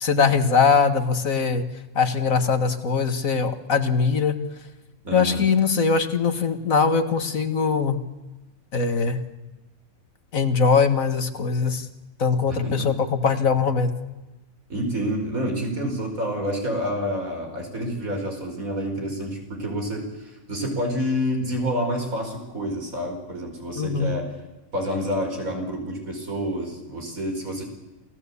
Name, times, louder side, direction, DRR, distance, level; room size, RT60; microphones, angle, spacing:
voice 1, 0.0-1.7 2.0-4.4 5.1-8.0 8.7-9.2 10.3-11.9 12.2-13.9 23.8-24.1, left 5 dB, 75° left, 9 dB, 2.1 m, -21 dB
voice 2, 5.0-5.4 12.5-12.9 14.7-24.2 24.7-27.6, equal, 80° right, 3 dB, 5.5 m, -28 dB
28.0 x 17.5 x 8.4 m, 1.1 s
omnidirectional pair, 1.4 m